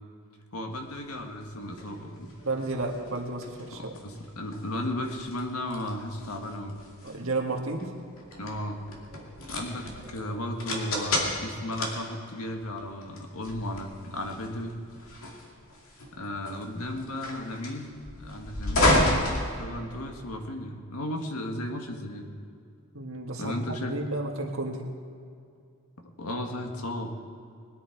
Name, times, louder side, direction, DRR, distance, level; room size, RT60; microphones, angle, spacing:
voice 1, 0.5-2.3 3.7-6.8 8.4-8.8 9.5-14.8 16.1-17.9 18.2-22.3 23.4-23.9 26.2-27.1, left 1 dB, 90° left, 3 dB, 1.7 m, -35 dB
sound 1, 0.9-20.2, left 1 dB, 65° left, 2.4 m, -32 dB
voice 2, 2.4-3.9 7.0-7.9 22.9-24.9, right 2 dB, 65° right, 1 dB, 1.9 m, -32 dB
20.5 x 10.5 x 4.7 m, 2.4 s
head